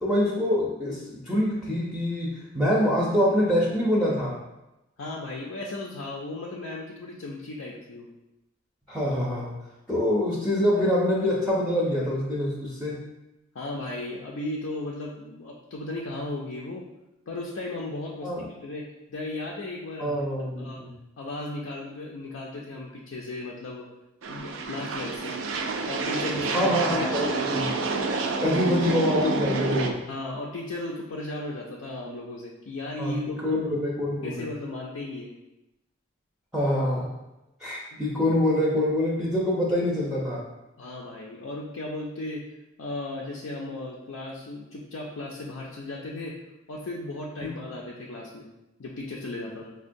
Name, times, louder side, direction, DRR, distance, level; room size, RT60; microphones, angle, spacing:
voice 1, 0.0-4.4 8.9-9.6 9.9-13.0 18.2-18.5 20.0-20.9 26.5-27.7 28.4-30.0 33.0-34.5 36.5-37.1 37.6-40.5 47.4-47.5, left 1 dB, 5° right, -6 dB, 0.5 m, -25 dB
voice 2, 5.0-8.1 13.5-16.8 17.3-18.3 18.6-20.2 20.6-20.8 21.2-23.9 24.3-25.4 25.9-27.1 30.1-33.8 34.2-35.3 37.9-38.0 40.8-42.4 42.8-46.4 46.7-48.5 48.8-49.7, left 2 dB, 90° left, -3 dB, 0.5 m, -35 dB
sound 1, 24.2-29.9, right 3 dB, 70° right, 0.4 m, -28 dB
5.2 x 2.2 x 2.5 m, 0.94 s
head